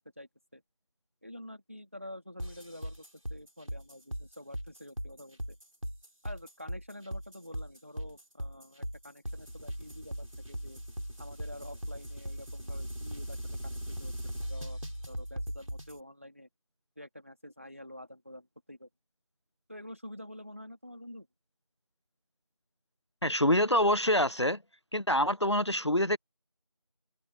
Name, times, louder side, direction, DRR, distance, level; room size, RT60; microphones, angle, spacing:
voice 1, 0.2-0.6 1.2-5.6 6.2-10.8 11.2-14.8 15.1-16.5 17.0-18.9 19.7-21.3, left 1 dB, 25° right, 2.8 m, -48 dB
sound 1, 2.4-16.0, equal, 75° right, 3.6 m, -39 dB
voice 2, 23.2-24.6 24.9-26.2, left 1 dB, 55° left, 0.6 m, -26 dB
figure-of-eight pair, 180°, 17 cm